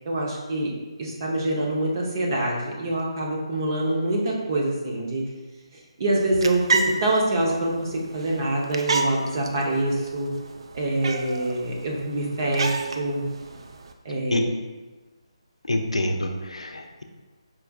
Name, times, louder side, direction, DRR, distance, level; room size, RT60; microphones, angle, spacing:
voice 1, 0.0-0.7 1.0-5.2 6.0-10.3 10.7-13.2 14.0-14.4, right 1 dB, 40° right, -2 dB, 0.8 m, -25 dB
sound 1, 6.1-13.9, right 3 dB, 55° right, 0.4 m, -31 dB
voice 2, 15.6-17.0, left 1 dB, 90° left, 5 dB, 0.5 m, -26 dB
4.6 x 3.4 x 2.3 m, 1.2 s
figure-of-eight pair, 155°, 3 cm